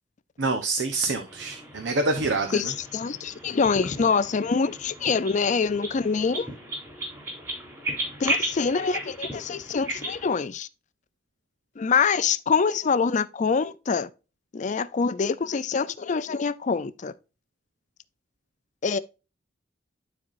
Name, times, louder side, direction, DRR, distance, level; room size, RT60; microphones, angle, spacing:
voice 1, 0.4-2.7, right 3 dB, 80° right, 0.9 m, -26 dB
sound 1, 1.3-10.3, right 1 dB, 20° right, 3.5 m, -35 dB
voice 2, 2.5-6.5 8.2-10.7 11.8-14.1 14.5-17.1 18.8-19.0, left 5 dB, 40° left, 0.4 m, -25 dB
12.5 x 4.2 x 2.5 m
head